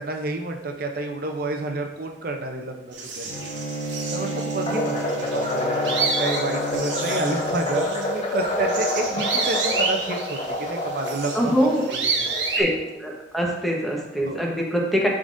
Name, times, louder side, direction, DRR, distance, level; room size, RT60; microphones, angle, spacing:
voice 1, 0.0-3.5 4.1-11.5 11.9-12.3 14.2-14.4, right 2 dB, 55° right, 4 dB, 0.6 m, -30 dB
sound 1, 2.9-12.6, right 4 dB, 80° right, 1.1 m, -30 dB
Bowed string instrument, 3.3-7.9, equal, 50° left, 1.2 m, -32 dB
sound 2, 4.7-13.0, left 1 dB, 35° left, 0.7 m, -28 dB
voice 2, 11.3-11.8 12.6-12.7 13.0-15.1, equal, ahead, -1 dB, 0.9 m, -23 dB
10.5 x 3.8 x 2.5 m, 0.98 s
head